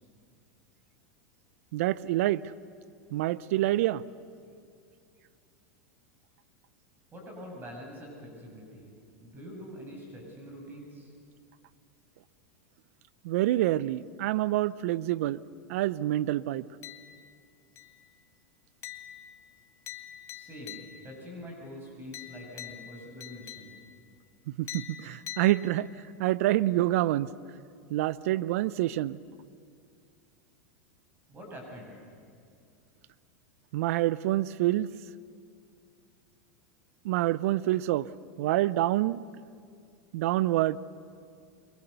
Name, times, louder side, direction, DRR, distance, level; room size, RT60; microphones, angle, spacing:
voice 1, 1.7-2.4 3.1-4.0 13.2-15.4 15.7-16.6 24.5-25.9 26.2-27.3 27.9-29.2 33.7-34.9 37.0-38.1 38.4-39.2 40.1-40.8, right 15 dB, 70° right, 19 dB, 0.7 m, -27 dB
voice 2, 7.1-8.9 9.2-11.1 20.3-23.8 31.3-32.0, equal, 25° right, 0 dB, 7.5 m, -45 dB
sound 1, 16.8-17.4 17.8-18.2 18.8-21.2 22.1-24.0 24.7-26.1, left 11 dB, 40° left, 1.8 m, -45 dB
29.0 x 23.5 x 6.9 m, 2.4 s
hypercardioid pair, 110°, 8 cm